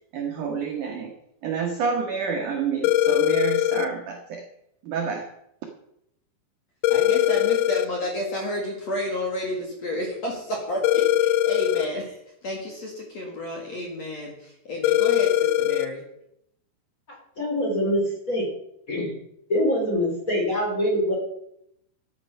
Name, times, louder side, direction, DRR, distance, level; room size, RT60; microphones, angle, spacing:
voice 1, 0.1-1.1 1.4-4.5 4.8-5.3, right 6 dB, 75° right, 3 dB, 1.9 m, -28 dB
sound 1, 2.8-3.9 6.8-7.9 10.8-11.9 14.8-15.9, left 13 dB, 90° left, 2.3 m, -21 dB
voice 2, 6.9-16.0, left 1 dB, 45° left, -1 dB, 2.5 m, -31 dB
voice 3, 17.1-18.5 18.9-19.1 19.5-21.2, equal, 20° left, -1 dB, 2.8 m, -24 dB
13.5 x 9.2 x 5.5 m, 0.79 s
omnidirectional pair, 5.3 m